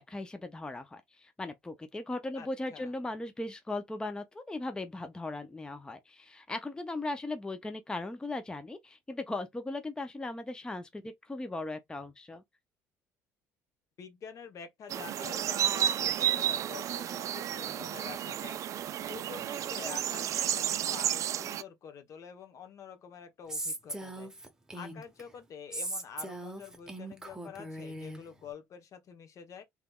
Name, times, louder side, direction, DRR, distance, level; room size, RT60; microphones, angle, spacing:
voice 1, 0.0-12.4, left 2 dB, 10° left, 0.6 m, -38 dB
voice 2, 2.3-2.9 14.0-18.6 19.0-24.3 24.7-29.6, left 7 dB, 50° left, 0.9 m, -47 dB
sound 1, 14.9-21.6, right 10 dB, 50° right, 0.4 m, -32 dB
Female speech woman speaking, 23.5-25.2 25.7-28.2, right 1 dB, 10° right, 0.9 m, -39 dB
3.3 x 3.0 x 2.3 m
supercardioid pair, 85°, 7 cm